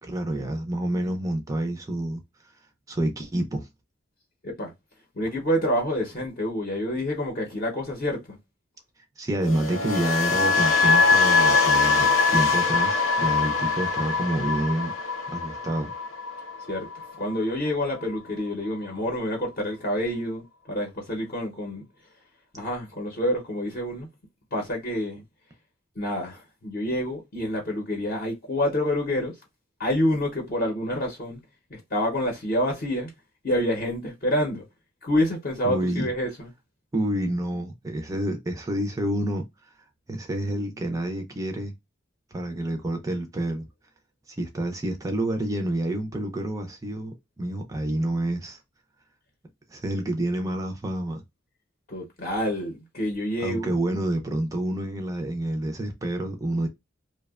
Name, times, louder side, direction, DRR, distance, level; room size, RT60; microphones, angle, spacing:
voice 1, 0.0-2.5 2.9-3.7 9.2-14.9 15.3-15.9 35.6-36.1 36.9-39.4 40.1-41.7 42.3-43.7 44.3-48.6 49.7-51.2 53.4-56.7, right 1 dB, 15° right, 0.3 m, -28 dB
voice 2, 5.2-8.4 16.7-21.9 22.5-24.1 24.5-25.2 26.0-29.3 29.8-31.4 31.7-33.1 33.4-34.6 35.0-36.5 51.9-53.8, left 1 dB, 45° left, 0.6 m, -27 dB
sound 1, 9.4-17.5 17.8-18.2, left 4 dB, 85° left, 0.6 m, -23 dB
2.7 x 2.1 x 2.2 m
head